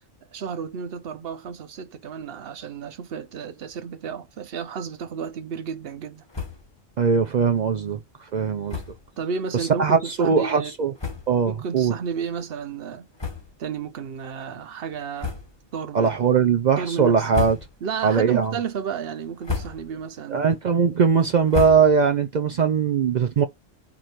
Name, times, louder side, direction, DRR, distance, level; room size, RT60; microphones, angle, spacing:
voice 1, 0.2-6.3 9.2-10.7 11.5-13.1 13.6-15.4 15.7-16.1 16.8-17.3 17.8-20.5, right 6 dB, 55° right, 0.8 m, -32 dB
sound 1, 6.3-6.8 7.1-7.2 7.5-7.7 8.6-9.1 9.8-9.9 10.6-10.7 11.0-11.5 12.1-12.2 13.1-13.8 14.2-14.3 15.1-15.8 16.2-16.6 17.1-18.0 18.4-18.8 19.2-20.1 20.4-22.3, left 5 dB, 20° left, 1.0 m, -33 dB
voice 2, 7.0-8.0 8.3-8.8 9.6-10.9 11.3-11.9 15.9-17.6 18.0-18.5 20.3-23.4, right 6 dB, 75° right, 0.4 m, -20 dB
4.8 x 2.5 x 4.3 m
omnidirectional pair, 1.3 m